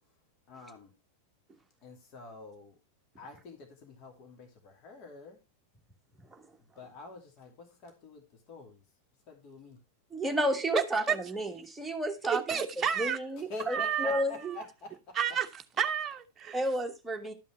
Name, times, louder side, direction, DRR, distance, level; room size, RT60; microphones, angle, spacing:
voice 1, 0.5-0.9 1.8-2.8 3.2-5.4 6.6-8.8 9.3-9.8 13.4-15.2, left 3 dB, 40° left, 2.6 m, -47 dB
voice 2, 10.1-12.6 13.0-14.5 16.5-17.3, right 1 dB, 5° right, 1.6 m, -32 dB
voice 3, 10.7-11.2 12.3-13.2 13.7-14.2 15.2-15.5 15.8-16.6, right 8 dB, 20° right, 1.0 m, -30 dB
12.0 x 5.5 x 4.4 m
figure-of-eight pair, 90°, 0 cm